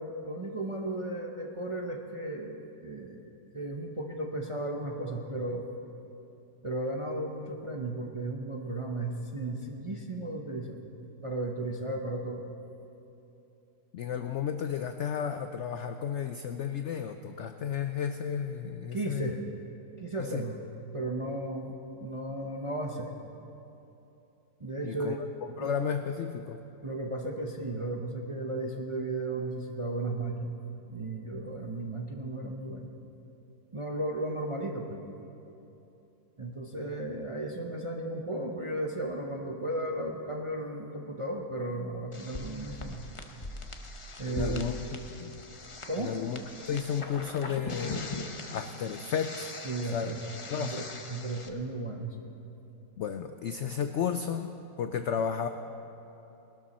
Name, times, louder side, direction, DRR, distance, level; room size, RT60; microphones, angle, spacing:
voice 1, 0.0-5.7 6.6-10.9 11.2-12.5 18.9-19.4 20.0-20.6 20.9-23.1 24.6-25.2 25.6-25.7 26.8-30.6 30.9-32.9 33.7-35.0 36.4-43.1 44.2-44.8 45.9-46.1 49.6-50.2 50.5-52.2, right 2 dB, 30° right, 1 dB, 0.5 m, -35 dB
voice 2, 13.9-19.3 20.2-20.4 24.8-25.2 25.6-26.6 44.3-44.7 45.2-45.4 46.0-46.4 46.7-48.1 48.5-49.5 49.8-50.1 50.5-50.8 53.0-55.5, left 8 dB, 75° left, 8 dB, 0.6 m, -33 dB
sound 1, 42.1-51.5, left 2 dB, 35° left, 0.5 m, -41 dB
20.0 x 12.5 x 4.2 m, 2.9 s
omnidirectional pair, 1.8 m